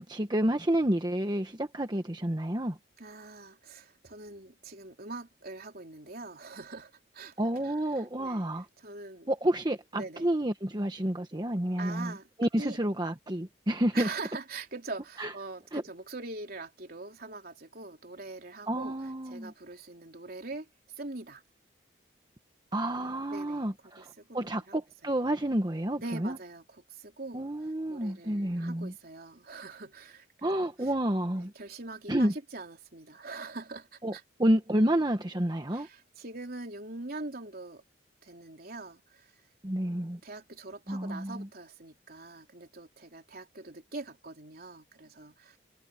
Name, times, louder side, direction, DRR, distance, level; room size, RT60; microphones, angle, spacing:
voice 1, 0.0-2.8 7.4-8.6 9.3-12.1 12.4-14.1 15.2-15.3 15.7-15.8 18.7-19.5 22.7-26.4 27.3-28.9 30.4-31.5 32.1-32.3 34.0-35.9 39.6-40.2 40.9-41.5, right 1 dB, 25° right, 1.2 m, -29 dB
voice 2, 3.0-7.4 7.6-8.5 8.8-9.3 9.9-10.3 11.8-12.3 12.6-12.8 13.9-18.9 19.3-20.7 21.0-21.4 23.3-24.8 25.0-25.1 26.0-27.4 27.9-30.9 31.4-34.2 35.7-37.8 38.2-39.3 40.2-45.6, right 3 dB, 55° right, 3.7 m, -43 dB
head